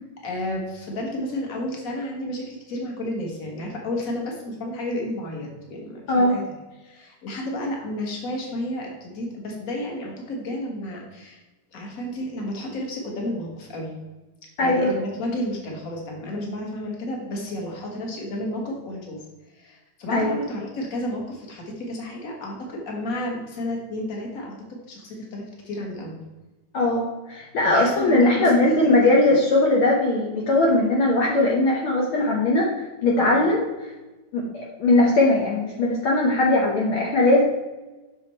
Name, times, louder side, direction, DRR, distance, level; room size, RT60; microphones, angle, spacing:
voice 1, 0.2-6.4 6.8-11.4 11.7-14.0 14.6-19.2 19.5-24.5 24.9-26.2 27.6-28.7 29.0-29.4 33.2-33.4, left 1 dB, 40° left, 0 dB, 1.2 m, -31 dB
voice 2, 14.6-14.9 20.1-20.3 26.7-27.0 27.3-33.6 34.3-34.4 34.8-37.4, left 2 dB, 80° left, -2 dB, 1.1 m, -19 dB
7.0 x 6.3 x 4.3 m, 1.2 s
omnidirectional pair, 3.9 m